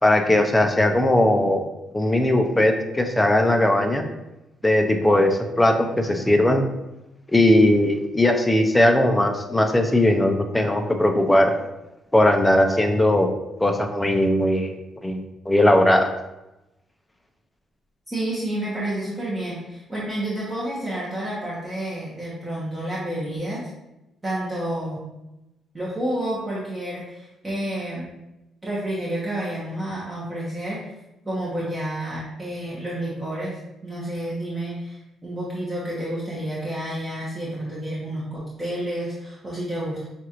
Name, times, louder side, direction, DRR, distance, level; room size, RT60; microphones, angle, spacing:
voice 1, 0.0-1.7 1.9-4.0 4.6-6.6 7.3-11.5 12.1-13.3 13.6-14.7 15.0-15.2 15.5-16.1, left 1 dB, 10° left, 4 dB, 0.5 m, -19 dB
voice 2, 18.1-23.7 24.2-25.0 25.7-28.1 28.6-30.9 31.2-33.5 33.8-40.0, right 1 dB, 20° right, -8 dB, 1.1 m, -30 dB
6.0 x 2.5 x 2.9 m, 0.96 s
cardioid pair, 90°, 0 cm